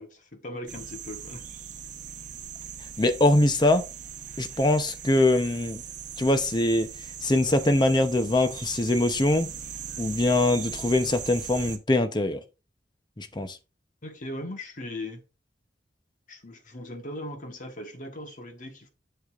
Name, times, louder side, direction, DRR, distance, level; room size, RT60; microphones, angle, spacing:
voice 1, 0.0-1.4 14.0-15.2 16.3-18.9, left 1 dB, 45° left, 1.3 m, -39 dB
sound 1, 0.7-11.8, right 8 dB, 45° right, 1.0 m, -40 dB
voice 2, 3.0-3.8 4.4-5.8 6.2-6.9 7.2-9.5 10.0-12.4 13.2-13.6, left 2 dB, 25° left, 0.7 m, -23 dB
7.8 x 6.8 x 2.5 m
head